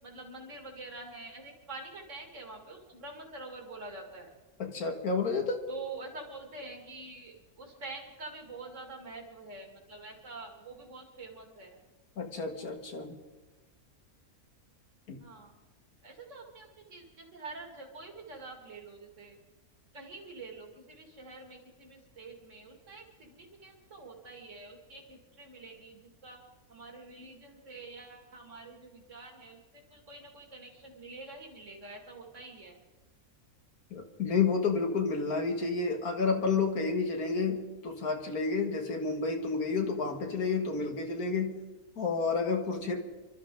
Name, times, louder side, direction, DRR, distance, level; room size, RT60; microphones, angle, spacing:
voice 1, 0.0-4.3 5.7-11.8 15.2-15.6 16.0-19.4 19.9-26.4 26.7-32.8, right 3 dB, 55° right, 2 dB, 2.7 m, -46 dB
voice 2, 4.6-5.6 12.2-13.1 15.1-15.2 33.9-41.6 42.0-43.0, left 4 dB, 85° left, 4 dB, 2.2 m, -30 dB
26.5 x 13.0 x 3.8 m, 1.2 s
omnidirectional pair, 1.5 m